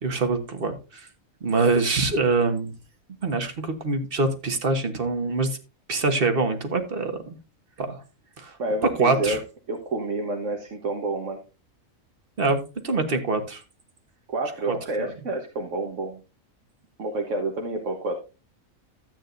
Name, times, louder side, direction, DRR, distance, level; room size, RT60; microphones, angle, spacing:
voice 1, 0.0-1.1 1.4-2.7 3.2-5.6 5.9-7.4 7.8-8.0 8.4-8.6 8.8-9.4 12.4-13.6 14.7-15.1, right 3 dB, 45° right, 7 dB, 1.5 m, -24 dB
voice 2, 8.6-9.4 9.7-11.4 14.3-16.2 17.0-18.2, right 2 dB, 65° right, 2 dB, 1.5 m, -29 dB
13.5 x 8.6 x 2.6 m, 0.30 s
omnidirectional pair, 1.4 m